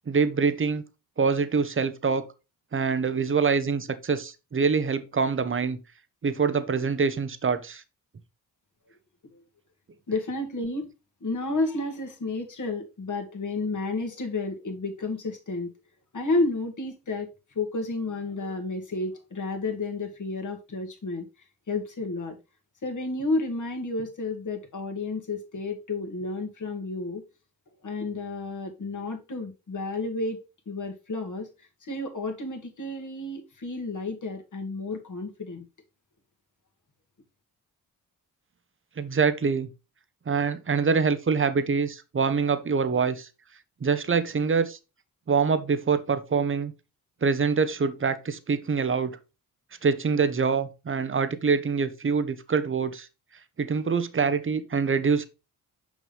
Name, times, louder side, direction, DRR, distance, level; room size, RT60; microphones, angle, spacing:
voice 1, 0.1-0.8 1.2-2.2 2.7-5.8 6.2-7.8 39.0-39.7 40.3-43.3 43.8-44.8 45.3-46.7 47.2-49.2 49.8-53.1 53.6-55.3, right 5 dB, 30° right, 0.9 m, -25 dB
voice 2, 10.1-10.9 11.2-15.7 16.1-21.3 21.7-22.4 22.8-27.2 27.8-35.6, left 2 dB, 50° left, 2.1 m, -31 dB
6.2 x 5.2 x 3.3 m
supercardioid pair, 50°, 39 cm